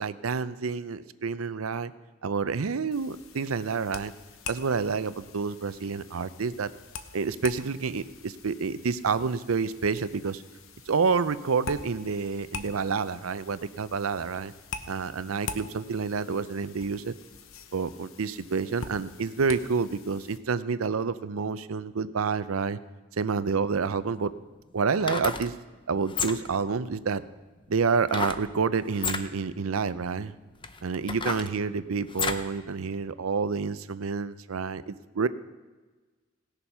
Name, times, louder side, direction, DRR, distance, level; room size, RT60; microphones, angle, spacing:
voice 1, 0.0-1.9 2.2-4.1 4.5-6.7 7.1-10.4 10.9-14.5 14.9-17.1 17.7-22.8 23.2-24.3 24.7-25.5 25.9-27.2 27.7-30.3 30.8-35.3, right 5 dB, 85° right, 14 dB, 0.6 m, -28 dB
sound 1, 2.9-20.4, left 5 dB, 75° left, 0.9 m, -44 dB
sound 2, 23.7-23.8 24.9-25.5 26.1-26.6 28.1-28.5 28.9-29.3 30.0-30.1 30.6-32.5 32.9-33.0, left 5 dB, 25° left, 0.6 m, -32 dB
18.0 x 6.9 x 5.6 m, 1.3 s
head